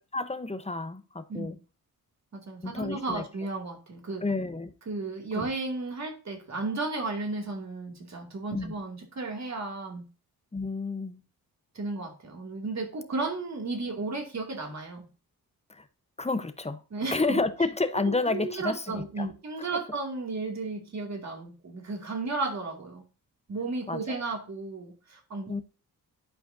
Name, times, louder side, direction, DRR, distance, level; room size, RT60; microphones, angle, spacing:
voice 1, 0.1-1.6 2.6-3.2 4.2-4.7 5.3-5.4 8.5-8.7 10.5-11.2 15.7-15.8 16.2-16.8 17.1-19.3 19.6-19.8 23.9-24.2 25.5-25.6, left 3 dB, 15° left, 0.9 m, -30 dB
voice 2, 2.3-4.2 4.9-10.0 11.7-15.1 16.9-17.4 18.1-23.0 23.5-25.6, right 3 dB, 45° right, 2.5 m, -34 dB
11.5 x 4.9 x 2.7 m
cardioid pair, 70°, 37 cm